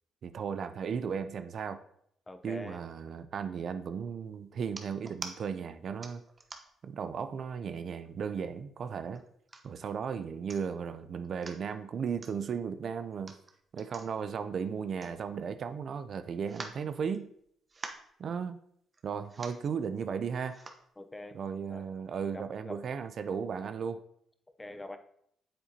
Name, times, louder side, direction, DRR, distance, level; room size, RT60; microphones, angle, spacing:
voice 1, 0.2-1.8 2.4-6.2 6.8-9.2 9.6-13.3 13.7-17.3 18.2-18.6 19.0-20.6 21.3-24.0, right 6 dB, 55° right, 11 dB, 0.5 m, -35 dB
voice 2, 2.3-2.8 21.0-21.4 21.7-21.9 22.3-22.8 24.6-25.0, left 2 dB, 15° left, 8 dB, 0.7 m, -44 dB
sound 1, 4.7-5.4 6.0-6.9 7.4-7.5 7.9-8.5 9.1-9.8 10.2-10.3 10.5-10.9 11.2-11.6 12.2-12.3 13.1-15.6 15.9-16.0 16.4-17.4 17.7-18.1 18.9-19.0 19.3-19.7 20.5-20.8 21.4-21.5, right 3 dB, 30° right, 1.0 m, -46 dB
8.6 x 7.2 x 2.8 m, 0.70 s
cardioid pair, 90°, 0 cm